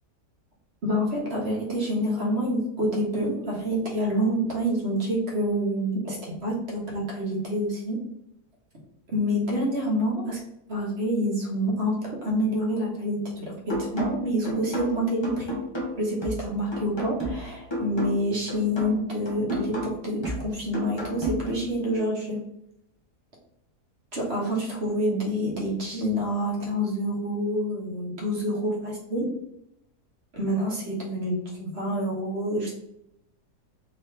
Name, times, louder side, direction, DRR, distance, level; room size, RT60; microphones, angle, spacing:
voice 1, 0.8-8.0 9.1-10.4 10.7-15.6 16.0-22.4 24.1-29.3 30.3-32.7, equal, 45° right, -3 dB, 1.4 m, -27 dB
sound 1, 13.7-21.7, equal, 20° left, 0.8 m, -33 dB
3.9 x 3.1 x 3.2 m, 0.80 s
omnidirectional pair, 1.7 m